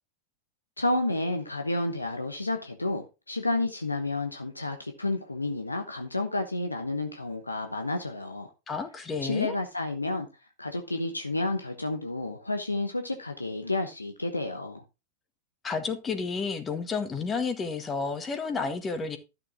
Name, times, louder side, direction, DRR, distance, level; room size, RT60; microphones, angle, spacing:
voice 1, 0.8-8.5 9.2-10.3 10.6-14.8, left 2 dB, 85° left, 1.1 m, -30 dB
voice 2, 8.7-9.5 15.6-19.2, left 4 dB, 20° left, 1.6 m, -31 dB
12.0 x 6.7 x 3.7 m
figure-of-eight pair, 90°, 0 cm